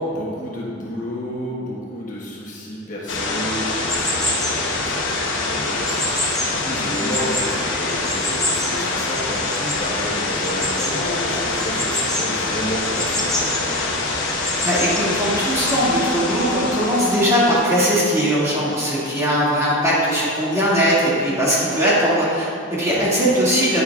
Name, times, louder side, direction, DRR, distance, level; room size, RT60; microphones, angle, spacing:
voice 1, 0.0-13.8 22.9-23.3, equal, 45° left, -5 dB, 1.2 m, -31 dB
sound 1, 3.1-17.7, left 3 dB, 80° left, 1.0 m, -25 dB
sound 2, 3.8-15.7, equal, 5° left, 0.9 m, -29 dB
voice 2, 14.6-23.8, equal, 15° right, -9 dB, 2.1 m, -19 dB
9.6 x 9.5 x 2.4 m, 2.5 s
head